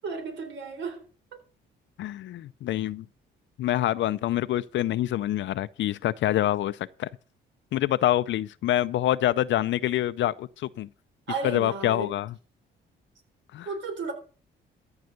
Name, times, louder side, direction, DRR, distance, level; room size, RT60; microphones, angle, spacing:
voice 1, 0.0-1.0 1.3-1.4 11.3-12.1 13.7-14.1, right 3 dB, 70° right, 4.0 m, -33 dB
voice 2, 2.0-3.0 3.6-7.1 7.7-10.9 11.4-12.3 13.5-13.7, left 13 dB, 70° left, 0.5 m, -26 dB
14.0 x 5.6 x 6.4 m
cardioid pair, 90°, 20 cm